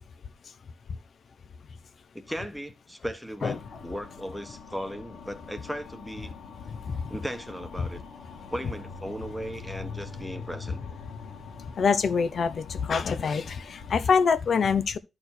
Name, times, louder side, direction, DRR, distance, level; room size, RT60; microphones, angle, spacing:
voice 1, 2.1-6.3 7.1-8.0 8.5-10.8, equal, ahead, 1.1 m, -37 dB
sound 1, 3.4-13.9, left 5 dB, 75° left, 2.0 m, -44 dB
voice 2, 11.8-15.0, left 5 dB, 45° left, 0.7 m, -25 dB
12.5 x 4.4 x 4.3 m
wide cardioid pair, 175°, 0 cm